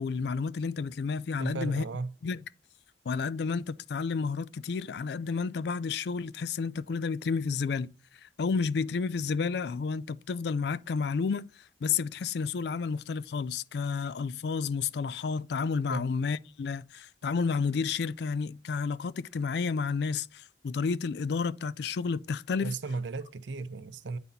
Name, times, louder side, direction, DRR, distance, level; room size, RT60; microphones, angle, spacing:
voice 1, 0.0-1.8 2.2-2.4 3.1-7.9 8.2-22.8, left 5 dB, 60° left, 0.3 m, -31 dB
voice 2, 1.4-2.1 15.9-16.0 22.6-24.2, right 3 dB, 75° right, 0.6 m, -35 dB
9.1 x 4.1 x 4.1 m
head